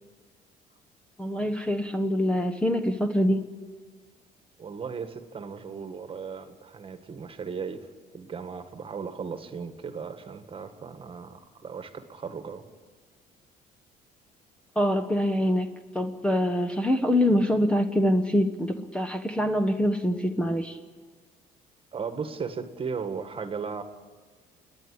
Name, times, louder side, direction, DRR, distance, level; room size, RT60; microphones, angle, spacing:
voice 1, 1.2-3.4 14.8-15.7 15.9-20.8, equal, 5° left, 8 dB, 1.2 m, -24 dB
voice 2, 4.6-7.9 8.1-12.6 21.9-23.8, right 5 dB, 30° right, 9 dB, 1.8 m, -36 dB
29.0 x 10.5 x 10.0 m, 1.5 s
cardioid pair, 110°, 17 cm